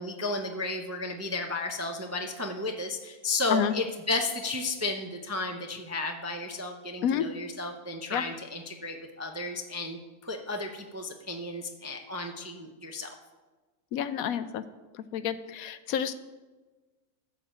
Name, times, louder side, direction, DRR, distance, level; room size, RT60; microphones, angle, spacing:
voice 1, 0.0-13.1, left 2 dB, 20° right, 3 dB, 0.4 m, -33 dB
voice 2, 13.9-14.6 15.1-16.1, left 9 dB, 75° left, 12 dB, 1.0 m, -29 dB
13.5 x 4.8 x 7.6 m, 1.3 s
omnidirectional pair, 1.6 m